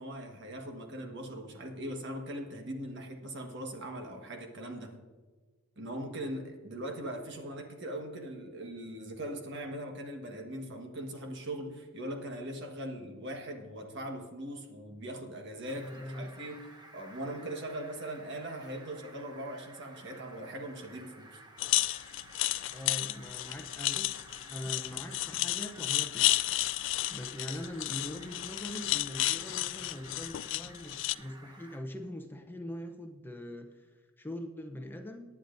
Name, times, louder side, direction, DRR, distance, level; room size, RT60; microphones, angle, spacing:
voice 1, 0.0-5.0 5.8-16.6 16.9-21.4, right 1 dB, 55° right, 3 dB, 1.5 m, -40 dB
Fowl, 15.6-31.8, right 2 dB, 20° right, 1.0 m, -53 dB
voice 2, 15.8-16.3 22.7-26.3 27.1-35.3, left 1 dB, 10° left, 5 dB, 0.7 m, -42 dB
sound 1, 21.6-31.1, left 17 dB, 60° left, 0.3 m, -32 dB
18.5 x 9.7 x 2.6 m, 1.4 s
head